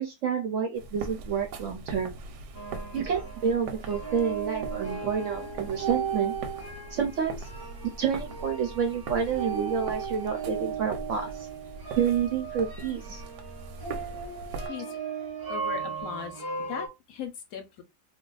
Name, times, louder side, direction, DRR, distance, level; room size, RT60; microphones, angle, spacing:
voice 1, 0.0-2.1 2.9-6.3 6.9-7.5 8.0-11.5 12.0-13.2, right 7 dB, 65° right, 0.8 m, -29 dB
sound 1, 0.8-14.7, right 3 dB, 90° right, 1.2 m, -41 dB
sound 2, 2.5-16.9, right 6 dB, 20° right, 0.6 m, -36 dB
voice 2, 14.7-15.0 15.5-16.4 16.7-17.8, left 8 dB, 70° left, 0.9 m, -38 dB
2.5 x 2.3 x 3.8 m
omnidirectional pair, 1.7 m